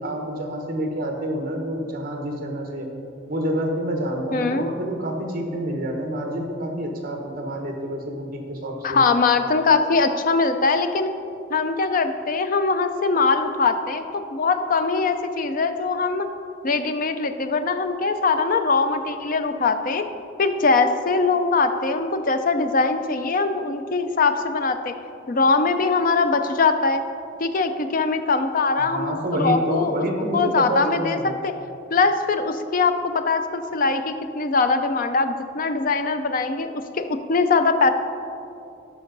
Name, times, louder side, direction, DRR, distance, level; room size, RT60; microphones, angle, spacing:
voice 1, 0.0-2.9 3.3-9.0 28.8-31.4, right 1 dB, 50° right, 2 dB, 1.1 m, -28 dB
voice 2, 4.3-4.7 8.8-11.1 11.5-14.0 14.3-16.3 16.6-20.1 20.4-24.9 25.3-27.0 27.4-30.0 30.3-31.5 31.9-37.9, left 4 dB, 45° left, 9 dB, 0.5 m, -22 dB
12.5 x 5.6 x 3.9 m, 2.7 s
head